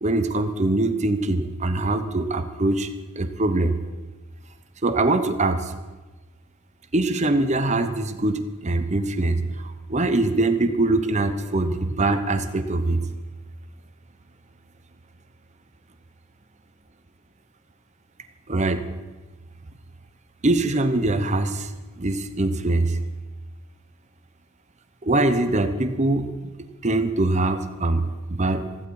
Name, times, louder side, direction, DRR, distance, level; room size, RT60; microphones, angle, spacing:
voice 1, 0.0-2.9 3.2-3.8 4.8-5.7 6.9-13.0 18.5-18.8 20.4-21.7 22.0-23.0 25.0-26.3 26.8-28.6, right 2 dB, 35° right, 9 dB, 0.9 m, -23 dB
15.5 x 14.5 x 4.8 m, 1.2 s
head